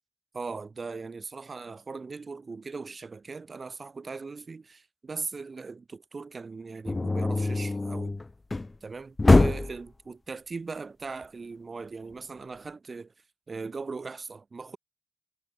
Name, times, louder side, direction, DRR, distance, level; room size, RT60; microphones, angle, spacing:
voice 1, 0.3-8.2 8.8-13.1 13.5-14.8, right 4 dB, 55° right, 3.7 m, -39 dB
sound 1, 6.9-8.8 9.2-9.8, left 2 dB, 40° left, 1.4 m, -23 dB
cardioid pair, 45°, 0 cm